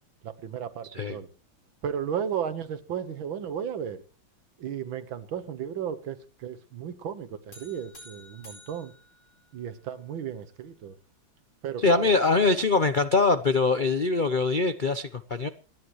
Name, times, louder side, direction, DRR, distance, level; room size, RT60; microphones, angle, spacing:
voice 1, 0.2-1.3 1.8-4.0 4.6-8.9 9.5-11.0 11.6-12.1, right 8 dB, 85° right, 2.1 m, -34 dB
sound 1, 7.5-10.0, equal, 80° left, 5.2 m, -51 dB
voice 2, 11.8-15.5, left 3 dB, 60° left, 0.5 m, -23 dB
28.0 x 11.0 x 3.1 m
omnidirectional pair, 2.1 m